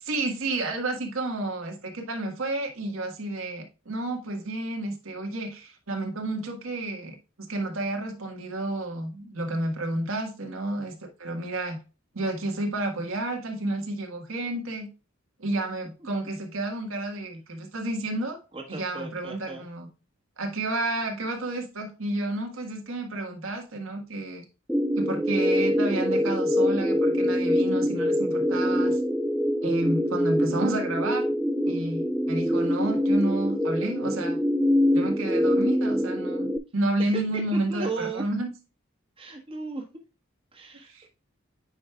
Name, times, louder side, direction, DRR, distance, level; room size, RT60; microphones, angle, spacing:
voice 1, 0.0-11.8 12.1-14.9 15.4-18.4 18.7-19.9 20.4-24.4 25.0-29.0 29.6-31.3 31.7-34.4 34.9-38.5 40.9-41.1, right 2 dB, 80° right, 1.6 m, -31 dB
voice 2, 18.5-19.7 37.0-37.2 37.7-38.2 39.2-39.8 40.5-41.1, right 3 dB, 25° right, 1.4 m, -35 dB
sound 1, 24.7-36.6, equal, ahead, 0.4 m, -24 dB
8.9 x 5.3 x 2.3 m
head